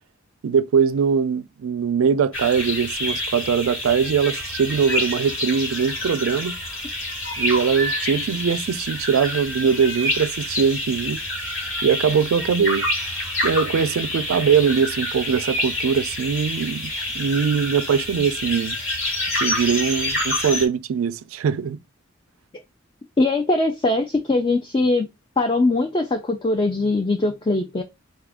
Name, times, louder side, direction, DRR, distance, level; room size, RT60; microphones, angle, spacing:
voice 1, 0.4-6.6 7.4-11.2 11.8-12.9 13.4-18.8 19.4-21.8, right 6 dB, 80° right, 0.3 m, -21 dB
sound 1, 2.3-20.7, left 1 dB, 70° left, 1.7 m, -27 dB
voice 2, 23.2-25.1 25.4-27.8, left 2 dB, 25° left, 0.4 m, -21 dB
4.2 x 2.4 x 3.4 m
head